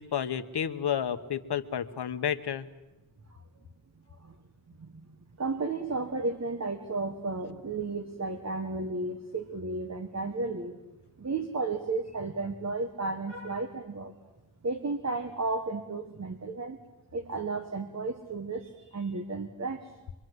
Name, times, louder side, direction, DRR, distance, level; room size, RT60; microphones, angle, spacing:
voice 1, 0.0-2.7, left 8 dB, 60° left, 8 dB, 1.3 m, -31 dB
voice 2, 5.4-10.7 11.2-14.1 14.6-16.8 17.1-19.9, right 3 dB, 35° right, 6 dB, 1.6 m, -33 dB
26.0 x 23.5 x 8.1 m, 1.0 s
wide cardioid pair, 160°, 45 cm